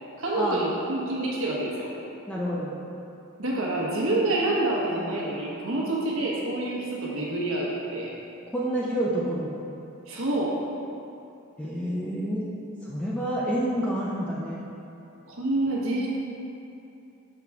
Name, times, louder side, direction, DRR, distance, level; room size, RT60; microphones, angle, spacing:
voice 1, 0.2-1.9 3.4-8.1 10.1-10.6 15.3-16.1, right 2 dB, 70° right, -4 dB, 1.1 m, -27 dB
voice 2, 2.3-2.7 8.5-9.6 11.6-12.4 12.8-14.6, equal, 5° left, -7 dB, 0.4 m, -28 dB
5.8 x 4.6 x 3.5 m, 2.8 s
head